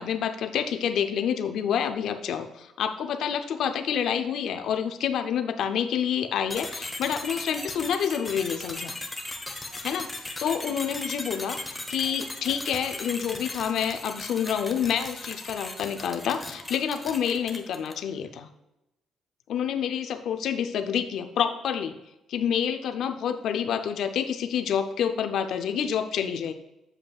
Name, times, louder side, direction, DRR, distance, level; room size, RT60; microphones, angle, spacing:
voice 1, 0.0-9.0 9.8-18.5 19.5-22.0 22.3-26.5, left 8 dB, 65° left, 7 dB, 0.5 m, -28 dB
sound 1, 6.5-18.1, left 2 dB, 10° left, 0.7 m, -37 dB
7.6 x 7.3 x 2.3 m, 0.92 s
cardioid pair, 140°, 0 cm